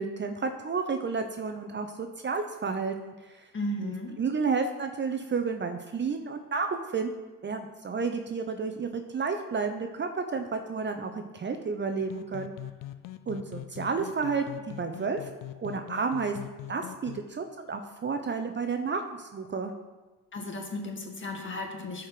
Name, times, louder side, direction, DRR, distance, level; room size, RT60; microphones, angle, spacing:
voice 1, 0.0-3.5 3.8-7.1 7.4-12.5 13.3-15.3 15.6-19.7, right 5 dB, 30° right, 6 dB, 0.9 m, -31 dB
voice 2, 3.5-4.1 20.3-22.1, left 1 dB, 30° left, 2 dB, 2.1 m, -35 dB
sound 1, 12.0-17.2, left 13 dB, 60° left, 0.7 m, -43 dB
13.5 x 5.1 x 5.9 m, 1.2 s
cardioid pair, 95°, 37 cm